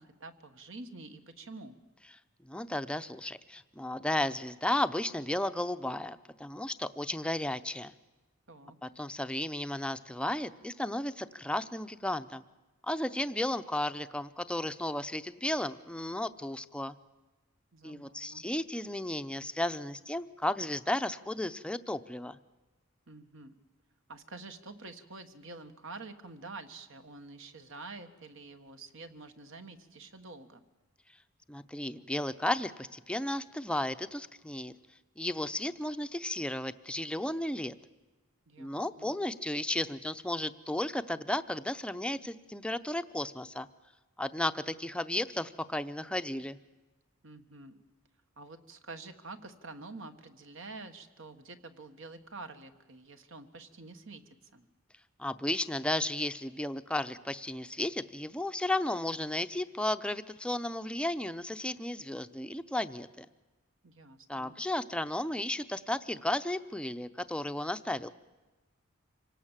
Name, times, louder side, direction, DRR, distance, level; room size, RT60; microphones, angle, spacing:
voice 1, 0.0-1.8 8.5-8.8 17.7-18.4 23.1-23.6 24.1-30.6 38.5-39.1 47.2-47.8 48.4-54.7 63.8-64.5, right 3 dB, 60° right, 8 dB, 1.6 m, -48 dB
voice 2, 2.4-7.9 8.8-12.4 12.8-17.0 17.8-22.4 31.5-34.7 35.2-37.8 38.6-43.7 44.2-46.6 55.2-63.3 64.3-68.1, left 1 dB, 5° left, 11 dB, 0.6 m, -34 dB
26.5 x 18.0 x 7.4 m, 1.2 s
head